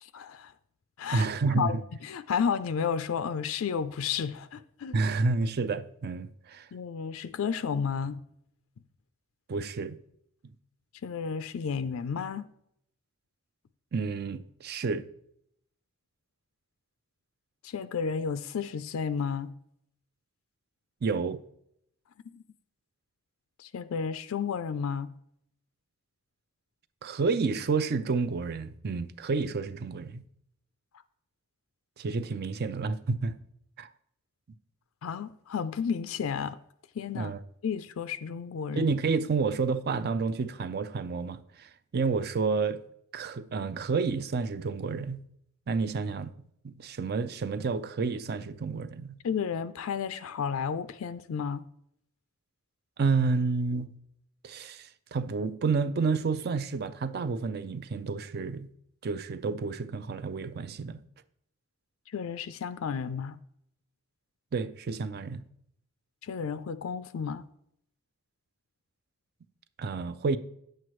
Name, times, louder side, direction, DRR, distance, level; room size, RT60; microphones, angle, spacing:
voice 1, 0.0-0.5 1.0-1.3 1.5-1.8 2.0-5.0 6.7-8.2 11.0-12.5 17.6-19.5 22.3-22.4 23.6-25.1 35.0-36.6 37.0-37.3 37.6-38.9 49.2-51.6 62.1-63.4 66.2-67.4, left 6 dB, 90° left, 0.4 m, -32 dB
voice 2, 1.1-1.8 4.9-6.7 9.5-10.0 13.9-15.1 21.0-21.4 27.0-30.2 32.0-33.4 33.8-33.9 37.1-37.4 38.8-42.8 43.1-45.2 45.7-46.3 46.6-49.2 53.0-53.9 54.4-58.7 59.0-61.0 64.5-65.4 69.8-70.4, right 4 dB, 50° right, 0.4 m, -30 dB
9.3 x 7.6 x 3.1 m
head